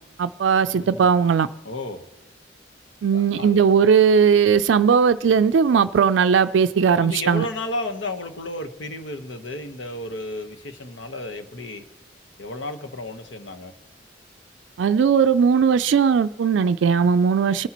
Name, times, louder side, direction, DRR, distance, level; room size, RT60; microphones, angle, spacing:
voice 1, 0.2-1.5 3.0-7.5 14.8-17.7, right 6 dB, 75° right, 0.3 m, -18 dB
voice 2, 0.7-1.1 1.6-2.0 3.1-3.6 7.0-11.8 12.4-13.7, left 2 dB, 85° left, 1.2 m, -33 dB
20.5 x 9.9 x 3.0 m
head